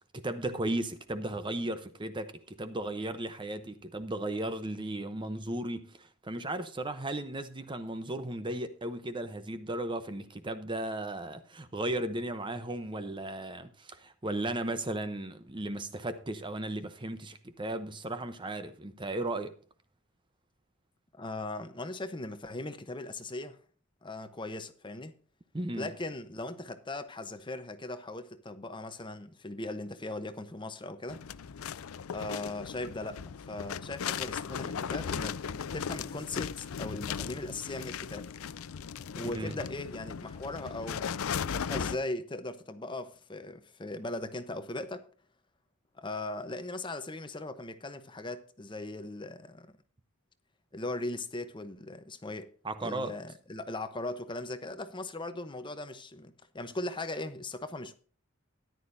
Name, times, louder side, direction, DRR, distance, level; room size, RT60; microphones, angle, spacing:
voice 1, 0.1-19.5 25.5-25.9 39.4-39.6 52.6-53.1, right 1 dB, 20° right, 0.7 m, -35 dB
voice 2, 21.1-23.6 24.0-25.1 25.8-31.2 32.1-35.4 35.7-38.3 39.1-41.1 41.4-45.0 45.9-49.7 50.7-52.5 52.8-57.9, left 2 dB, 20° left, 0.9 m, -39 dB
sound 1, 31.1-42.0, left 7 dB, 80° left, 0.5 m, -37 dB
14.0 x 10.5 x 2.6 m
head